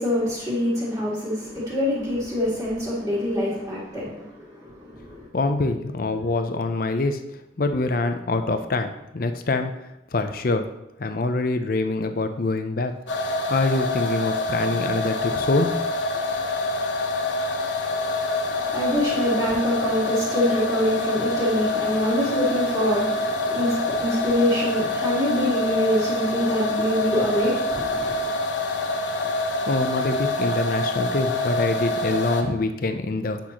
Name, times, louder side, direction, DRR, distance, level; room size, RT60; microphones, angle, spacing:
voice 1, 0.0-5.2 18.5-28.3, left 1 dB, 20° right, 1.9 m, -25 dB
voice 2, 5.3-7.2 7.6-9.7 10.1-10.7 11.0-12.9 13.5-15.7 29.3-33.4, left 2 dB, 50° left, 0.6 m, -25 dB
sound 1, 13.1-32.4, left 2 dB, 90° left, 0.8 m, -26 dB
8.5 x 5.7 x 2.9 m
head